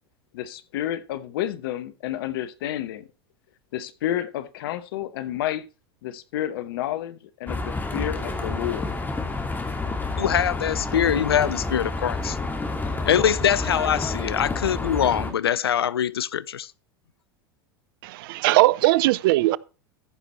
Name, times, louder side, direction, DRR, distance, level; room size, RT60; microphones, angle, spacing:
voice 1, 0.3-3.1 3.7-5.7 6.0-8.9, left 12 dB, 70° left, 1.0 m, -30 dB
sound 1, 7.5-15.3, left 3 dB, 15° left, 2.4 m, -29 dB
voice 2, 10.2-12.4 13.1-16.7, left 9 dB, 90° left, 0.4 m, -23 dB
voice 3, 18.0-19.6, right 18 dB, 65° right, 0.5 m, -19 dB
14.0 x 6.0 x 4.4 m
hypercardioid pair, 90°, 13 cm